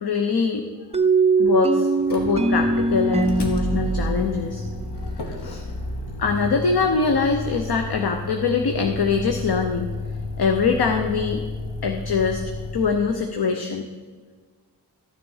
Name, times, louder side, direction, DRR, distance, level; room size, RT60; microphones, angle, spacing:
voice 1, 0.0-0.6 1.4-4.6 5.0-5.6 6.2-9.9 10.4-11.4 11.8-12.4 12.7-13.9, left 5 dB, 70° left, 5 dB, 0.9 m, -23 dB
sound 1, 0.9-5.6, right 3 dB, 15° right, 0.4 m, -22 dB
Motor vehicle (road), 2.0-13.2, left 1 dB, 85° left, 1.6 m, -31 dB
13.0 x 6.8 x 5.6 m, 1.4 s
cardioid pair, 50°, 40 cm